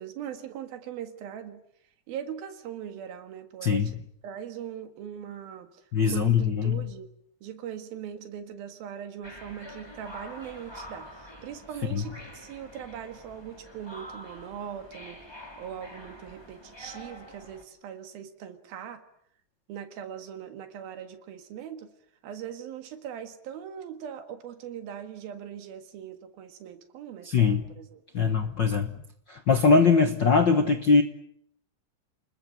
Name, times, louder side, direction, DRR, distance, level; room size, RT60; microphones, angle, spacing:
voice 1, 0.0-1.6 2.1-4.0 4.2-5.7 6.0-7.1 7.4-15.2 15.6-19.0 19.7-21.9 22.2-28.4, right 9 dB, 90° right, 7 dB, 3.6 m, -40 dB
voice 2, 3.6-4.0 5.9-6.9 11.9-12.0 27.2-27.6 28.1-28.9 29.3-31.0, left 5 dB, 70° left, 8 dB, 1.0 m, -22 dB
sound 1, 9.2-17.6, equal, 5° left, 3.1 m, -46 dB
29.0 x 21.0 x 7.9 m, 0.70 s
omnidirectional pair, 4.1 m